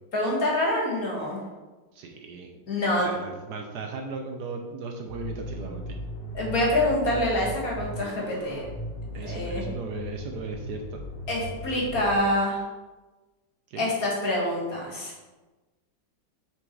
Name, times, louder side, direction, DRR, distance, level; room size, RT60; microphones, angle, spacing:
voice 1, 0.1-1.4 2.7-3.1 6.3-8.6 9.2-9.6 11.3-12.6 13.8-15.1, left 1 dB, 50° left, -3 dB, 2.1 m, -26 dB
voice 2, 1.9-2.5 3.0-6.0 9.1-11.0 13.7-13.9, right 4 dB, 70° right, 3 dB, 1.1 m, -37 dB
sound 1, 5.1-12.2, left 1 dB, 75° left, 1.9 m, -37 dB
6.3 x 4.7 x 4.6 m, 1.2 s
omnidirectional pair, 2.0 m